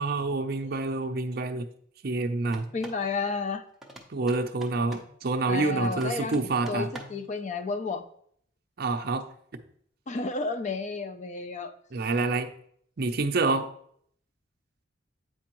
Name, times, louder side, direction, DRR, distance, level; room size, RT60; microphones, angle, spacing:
voice 1, 0.0-1.6 2.0-2.6 4.1-6.9 8.8-9.3 11.9-12.5 13.0-13.7, right 3 dB, 50° right, 7 dB, 0.5 m, -27 dB
sound 1, 2.4-3.1 3.8-5.2 5.8-7.3, right 1 dB, ahead, 0.7 m, -46 dB
voice 2, 2.7-3.7 5.5-6.4 6.7-8.0 10.1-11.7, left 3 dB, 35° left, 10 dB, 0.4 m, -31 dB
8.4 x 4.5 x 3.0 m, 0.64 s
head